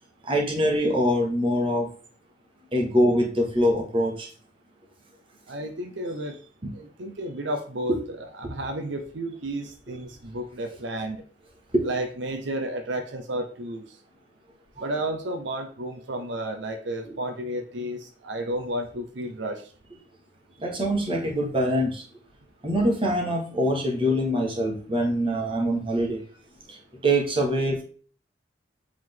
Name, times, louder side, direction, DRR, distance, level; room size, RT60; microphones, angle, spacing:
voice 1, 0.2-1.9 2.7-4.3 6.6-6.7 7.9-8.0 8.4-8.5 11.7-11.9 17.0-17.2 20.6-22.0 22.6-26.2 27.0-27.8, equal, 30° right, -1 dB, 1.7 m, -24 dB
voice 2, 5.5-6.4 6.7-11.2 11.8-14.0 14.8-19.7, right 1 dB, 85° right, 6 dB, 0.8 m, -32 dB
7.7 x 3.8 x 3.8 m, 0.43 s
head